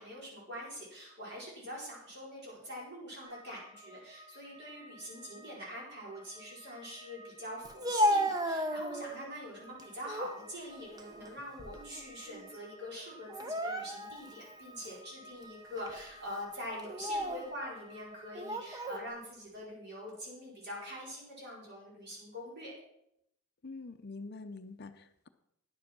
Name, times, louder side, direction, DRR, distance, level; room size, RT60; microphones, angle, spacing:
voice 1, 0.0-22.7, equal, 50° right, -4 dB, 4.9 m, -44 dB
sound 1, 3.2-19.1, right 1 dB, 75° right, 4.8 m, -55 dB
Speech, 7.6-9.3 9.8-10.4 10.8-12.0 12.3-12.5 13.3-14.3 14.8-15.0 15.8-16.0 16.8-17.5 18.3-19.0, equal, 15° right, 0.6 m, -33 dB
voice 2, 23.6-25.3, left 3 dB, 45° left, 10 dB, 0.6 m, -45 dB
10.5 x 7.6 x 6.0 m, 0.78 s
head